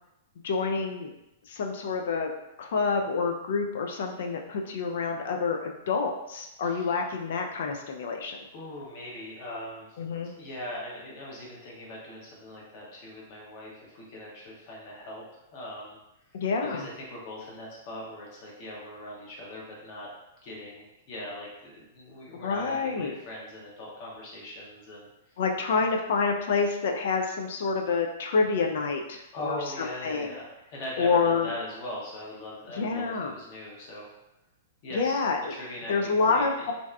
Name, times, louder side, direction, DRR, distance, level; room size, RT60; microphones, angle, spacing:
voice 1, 0.4-1.1 1.5-2.3 2.6-8.4 10.0-10.3 16.3-16.9 22.3-23.1 25.4-30.4 31.0-31.5 32.7-33.3 34.9-35.5 35.9-36.7, left 4 dB, 60° left, 3 dB, 0.3 m, -28 dB
voice 2, 6.6-6.9 8.5-10.0 10.4-16.0 16.7-20.1 20.4-25.1 29.3-34.1 34.8-35.2 35.5-36.7, left 1 dB, 45° left, -4 dB, 0.8 m, -40 dB
2.6 x 2.3 x 2.2 m, 0.89 s
figure-of-eight pair, 110°, 0 cm